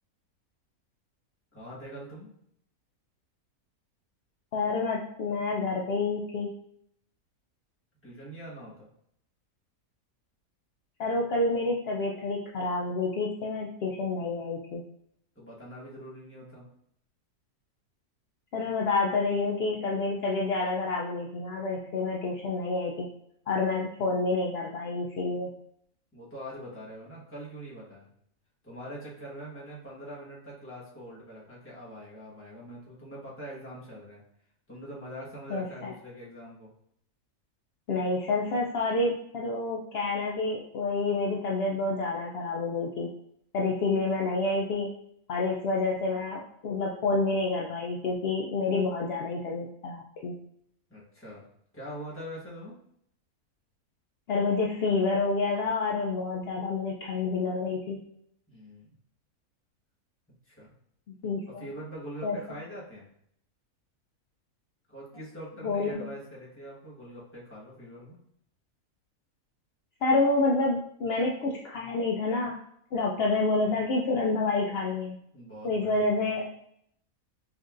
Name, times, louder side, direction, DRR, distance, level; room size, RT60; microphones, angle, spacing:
voice 1, 1.5-2.3 8.0-8.9 15.3-16.7 26.1-28.1 28.6-34.2 34.7-36.7 50.9-51.4 51.7-52.7 58.5-58.9 60.5-60.7 61.6-63.1 64.9-68.2 75.3-76.2, equal, 10° left, -6 dB, 1.1 m, -43 dB
voice 2, 4.5-6.5 11.0-14.8 18.5-23.1 23.5-25.5 35.5-35.9 37.9-43.1 43.5-44.9 45.3-50.4 54.3-58.0 61.2-61.6 62.2-62.4 65.6-66.0 70.0-72.6 72.9-75.2 75.6-76.5, left 3 dB, 70° left, -2 dB, 0.5 m, -28 dB
5.9 x 2.6 x 2.4 m, 0.70 s
omnidirectional pair, 1.6 m